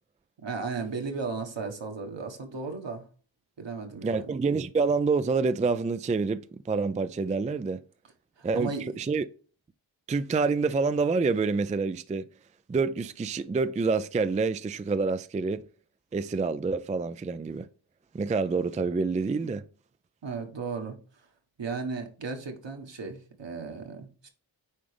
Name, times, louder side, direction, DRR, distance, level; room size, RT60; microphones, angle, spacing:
voice 1, 0.4-3.0 3.6-4.3 8.4-9.0 20.2-21.0 21.6-24.3, right 4 dB, 65° right, 1.5 m, -35 dB
voice 2, 4.0-7.8 8.4-8.7 9.0-9.2 10.1-12.3 12.7-15.6 16.1-17.7 18.1-19.6, right 4 dB, 15° right, 0.3 m, -27 dB
9.5 x 3.8 x 3.4 m
cardioid pair, 50°, 47 cm